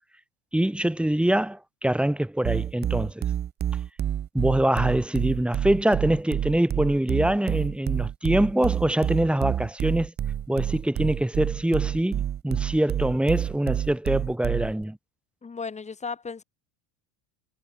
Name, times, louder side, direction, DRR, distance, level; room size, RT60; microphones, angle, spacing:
voice 1, 0.5-3.2 4.3-10.1 10.5-15.0, right 1 dB, ahead, 1.6 m, -24 dB
sound 1, 2.4-14.8, right 10 dB, 25° right, 0.8 m, -28 dB
voice 2, 15.4-16.4, left 5 dB, 15° left, 4.0 m, -35 dB
supercardioid pair, 145°, 44 cm